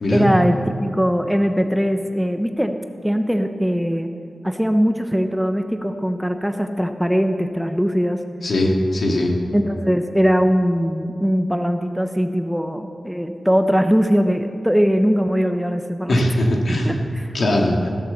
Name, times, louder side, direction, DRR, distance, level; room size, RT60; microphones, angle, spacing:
voice 1, 0.1-2.8 3.0-4.1 4.4-8.2 9.5-16.2 16.8-17.3, equal, ahead, 6 dB, 0.6 m, -20 dB
voice 2, 8.4-9.3 16.1-17.0 17.3-17.9, left 1 dB, 70° left, 0 dB, 2.1 m, -19 dB
15.0 x 8.3 x 7.0 m, 2.5 s
wide cardioid pair, 155°, 0 cm